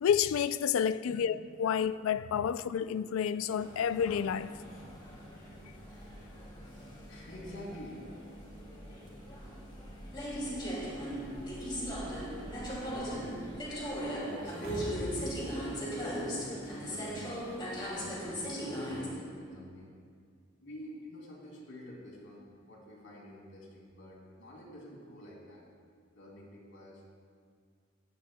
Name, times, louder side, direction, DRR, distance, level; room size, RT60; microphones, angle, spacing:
voice 1, 0.0-1.3 1.6-4.5, left 8 dB, 85° left, 0.3 m, -29 dB
voice 2, 0.8-1.3 5.6-5.8 6.2-6.7 7.1-8.1 9.1-9.2 12.4-15.4 15.8-17.4 17.7-19.9 20.6-25.6 26.1-27.0, equal, 70° left, 2.9 m, -48 dB
sound 1, 3.5-19.1, equal, 25° left, 2.4 m, -39 dB
sound 2, 4.9-12.8, equal, 20° right, 1.0 m, -52 dB
sound 3, 14.4-15.3 15.6-15.7, equal, 60° right, 2.4 m, -40 dB
16.0 x 10.0 x 2.2 m
head